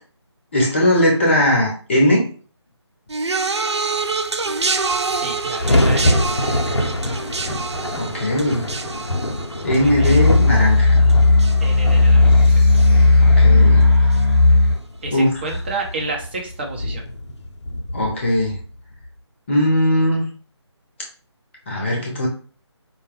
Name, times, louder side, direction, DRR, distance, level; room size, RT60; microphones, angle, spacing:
voice 1, 0.5-2.3 7.9-8.7 9.6-11.1 13.2-13.8 15.1-15.3 17.9-18.6 19.5-20.3 21.7-22.3, left 1 dB, 25° left, -1 dB, 0.7 m, -19 dB
sound 1, 3.1-12.5 12.7-13.3 14.1-14.2, right 4 dB, 70° right, 0.5 m, -27 dB
sound 2, 4.5-4.6 4.7-19.1, left 1 dB, 75° left, 0.6 m, -26 dB
voice 2, 5.0-7.2 9.7-10.3 11.6-12.9 13.3-14.1 15.0-17.1, right 3 dB, 25° right, 0 dB, 0.7 m, -32 dB
sound 3, 9.8-14.7, left 3 dB, ahead, 1.2 m, -13 dB
4.6 x 2.2 x 3.3 m, 0.40 s
figure-of-eight pair, 155°, 15 cm